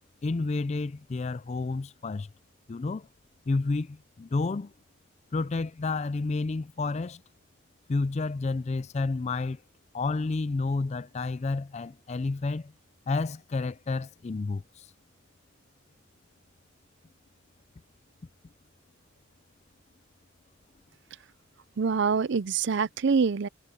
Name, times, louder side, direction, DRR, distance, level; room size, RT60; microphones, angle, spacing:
voice 1, 0.2-2.3 2.7-3.0 3.5-4.7 5.3-7.2 7.9-9.6 9.9-12.7 13.1-14.9, left 3 dB, 35° left, 0.4 m, -30 dB
voice 2, 21.8-23.5, right 5 dB, 55° right, 0.5 m, -25 dB
head